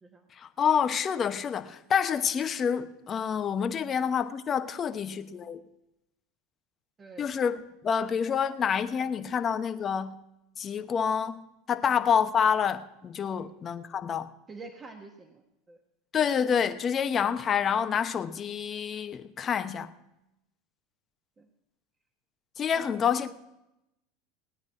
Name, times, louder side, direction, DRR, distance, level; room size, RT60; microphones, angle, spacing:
voice 1, 0.4-5.6 7.2-7.6 7.8-10.2 10.6-14.3 16.1-19.9 22.6-23.3, left 7 dB, 35° left, 1.0 m, -28 dB
voice 2, 14.5-15.8 19.7-19.9 21.4-21.5 22.7-23.2, right 3 dB, 25° right, 1.5 m, -48 dB
18.5 x 9.6 x 5.8 m
hypercardioid pair, 95°, 0 cm